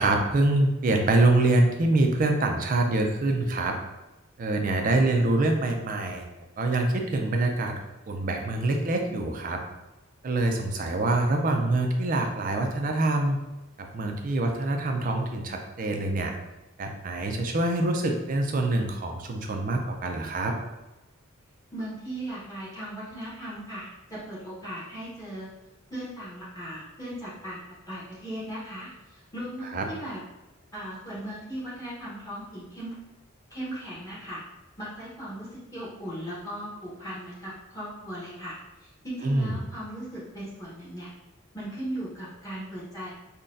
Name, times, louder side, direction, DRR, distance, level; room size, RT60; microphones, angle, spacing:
voice 1, 0.0-3.8 4.4-6.3 6.6-7.7 8.1-9.6 10.2-13.4 13.8-16.3 16.8-20.5 29.7-29.8 39.2-39.6, right 2 dB, 40° right, 3 dB, 0.4 m, -25 dB
voice 2, 21.7-25.5 25.9-30.2 30.7-32.9 33.5-34.4 34.8-41.1 41.5-43.1, right 1 dB, 15° left, -9 dB, 0.8 m, -38 dB
3.9 x 2.2 x 2.5 m, 1.1 s
head